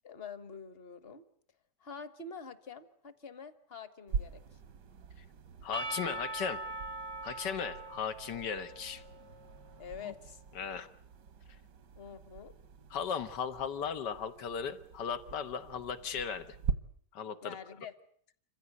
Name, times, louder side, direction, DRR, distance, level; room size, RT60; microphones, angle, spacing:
voice 1, 0.0-1.2 1.8-4.6 9.8-10.4 11.9-12.5 17.4-17.9, left 5 dB, 35° left, 14 dB, 1.4 m, -46 dB
sound 1, 4.1-16.7, right 6 dB, 80° right, 1.8 m, -43 dB
voice 2, 5.6-6.6 7.2-9.0 10.0-10.1 10.6-10.9 12.9-16.6 17.1-17.6, left 7 dB, 75° left, 10 dB, 1.9 m, -37 dB
Percussion / Church bell, 5.7-10.1, right 2 dB, 20° right, 0.7 m, -42 dB
27.0 x 15.5 x 9.5 m, 0.63 s
omnidirectional pair, 1.9 m